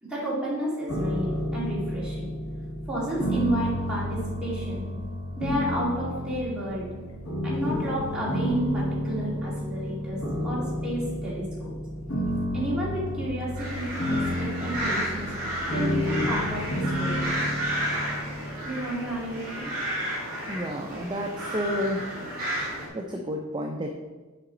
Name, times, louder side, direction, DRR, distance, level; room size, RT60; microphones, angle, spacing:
voice 1, 0.0-2.3 2.9-4.8 5.4-6.9 7.4-10.2 10.4-11.7 12.5-15.3 15.7-17.5 18.6-19.7, right 1 dB, 5° right, -8 dB, 2.2 m, -31 dB
sound 1, 0.9-19.8, left 1 dB, 70° left, 1.5 m, -31 dB
sound 2, 13.6-22.9, equal, 40° right, 2.4 m, -32 dB
voice 2, 20.5-22.0 22.9-23.9, equal, 20° right, 1 dB, 0.5 m, -30 dB
7.6 x 4.9 x 3.9 m, 1.2 s
head